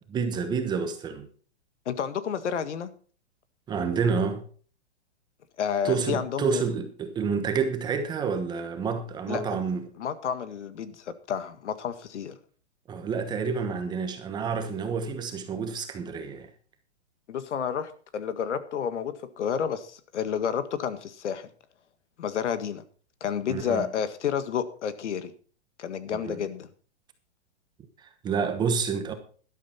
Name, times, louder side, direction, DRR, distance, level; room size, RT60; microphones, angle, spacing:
voice 1, 0.1-1.3 3.7-4.4 5.8-9.8 12.9-16.5 23.5-23.9 26.1-26.4 28.0-29.1, right 5 dB, 10° right, 1.1 m, -29 dB
voice 2, 1.8-2.9 5.6-6.6 9.3-9.6 10.0-12.3 17.3-21.5 22.2-22.8 23.2-25.3 25.8-26.7, left 8 dB, 85° left, 1.8 m, -30 dB
13.0 x 12.0 x 4.2 m
hypercardioid pair, 165°, 34 cm